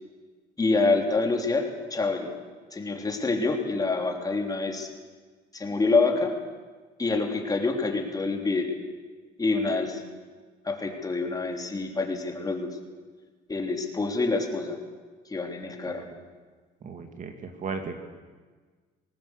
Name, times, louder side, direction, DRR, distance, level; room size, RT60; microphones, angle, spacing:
voice 1, 0.6-2.3 2.7-4.9 5.5-6.3 7.0-8.7 9.4-10.0 10.6-12.8 13.5-14.8 15.3-16.0, left 3 dB, 20° left, 3 dB, 3.4 m, -26 dB
voice 2, 16.8-18.0, right 5 dB, 50° right, 6 dB, 2.4 m, -35 dB
20.0 x 18.5 x 8.3 m, 1.4 s
cardioid pair, 110°, 17 cm